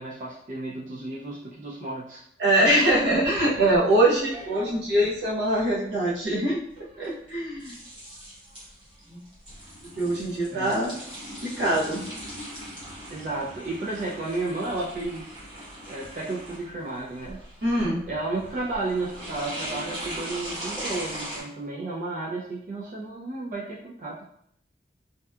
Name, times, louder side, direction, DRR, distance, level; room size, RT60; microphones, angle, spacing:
voice 1, 0.0-2.2 10.5-11.0 13.1-15.3 15.9-17.4 17.8-24.3, right 2 dB, 45° right, -5 dB, 0.3 m, -33 dB
voice 2, 2.4-6.6 7.0-7.8 9.1-9.2 10.0-10.9 11.4-12.0 17.6-18.0, right 1 dB, 85° right, -5 dB, 0.8 m, -23 dB
sound 1, 2.7-21.4, equal, 25° right, 0.8 m, -40 dB
2.7 x 2.2 x 2.2 m, 0.70 s
head